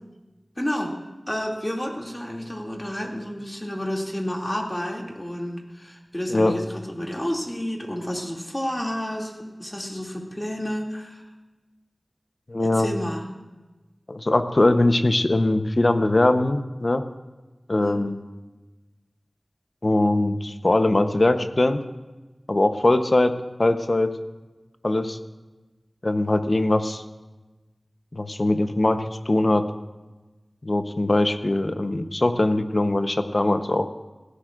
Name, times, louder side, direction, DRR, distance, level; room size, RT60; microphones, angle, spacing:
voice 1, 0.6-1.0 1.3-11.2 12.6-13.2 17.8-18.0, equal, 20° left, -1 dB, 2.5 m, -30 dB
voice 2, 12.5-12.9 14.1-17.0 17.7-18.2 19.8-21.8 22.5-23.3 23.6-24.1 24.8-25.2 26.0-27.0 28.1-29.6 30.6-33.9, left 2 dB, 50° left, 8 dB, 0.8 m, -21 dB
18.0 x 16.5 x 2.5 m, 1.2 s
wide cardioid pair, 55°, 0 cm